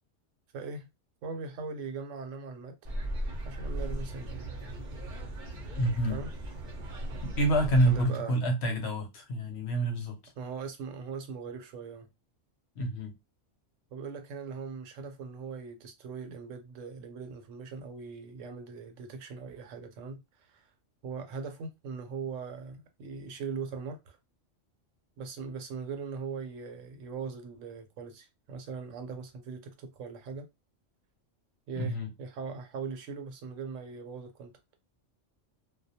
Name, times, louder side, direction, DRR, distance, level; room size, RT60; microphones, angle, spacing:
voice 1, 0.5-0.9 1.2-2.8 3.4-4.5 6.1-6.3 7.8-8.4 10.4-12.1 13.9-20.7 21.0-24.2 25.2-30.5 31.7-34.5, right 5 dB, 85° right, 1.0 m, -40 dB
sound 1, 2.8-8.1, right 1 dB, 50° right, 0.6 m, -37 dB
voice 2, 5.7-6.2 7.2-10.3 12.8-13.1 31.8-32.1, right 1 dB, 65° left, 0.9 m, -28 dB
2.3 x 2.0 x 2.7 m
omnidirectional pair, 1.3 m